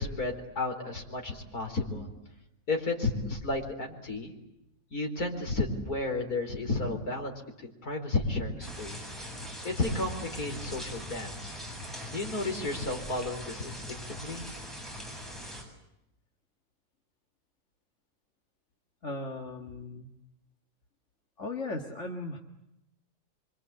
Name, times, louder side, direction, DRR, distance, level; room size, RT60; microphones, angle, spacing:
voice 1, 0.0-2.1 2.7-4.3 4.9-7.3 7.6-9.1 9.6-11.6 12.1-14.4, left 2 dB, 70° left, 2 dB, 5.0 m, -32 dB
sound 1, 8.6-15.6, equal, ahead, 7.9 m, -41 dB
voice 2, 19.0-20.1 21.4-22.4, left 2 dB, 50° left, 2 dB, 2.2 m, -37 dB
27.0 x 25.0 x 8.7 m, 0.86 s
omnidirectional pair, 1.7 m